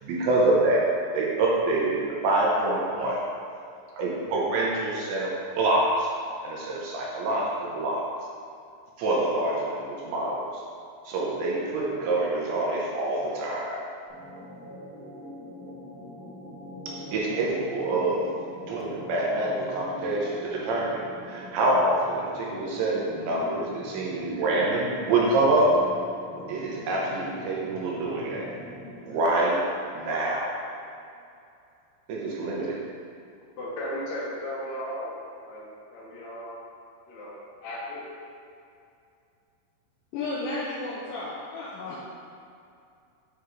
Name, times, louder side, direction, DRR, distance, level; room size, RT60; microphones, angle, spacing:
voice 1, 0.0-3.2 4.0-6.1 6.4-8.1 9.0-10.5 11.0-13.8 17.0-18.3 18.7-25.7 26.5-28.5 29.1-29.7 29.9-30.6 32.1-32.8, right 2 dB, 80° right, -4 dB, 3.3 m, -26 dB
sound 1, 14.1-29.2, equal, 60° right, 3.1 m, -42 dB
voice 2, 33.6-35.1 35.4-35.6 35.9-36.6 37.1-37.4 37.6-38.0, equal, 50° left, -8 dB, 2.5 m, -35 dB
voice 3, 40.1-42.0, left 2 dB, 80° left, -7 dB, 2.1 m, -33 dB
9.4 x 5.4 x 3.3 m, 2.5 s
omnidirectional pair, 5.2 m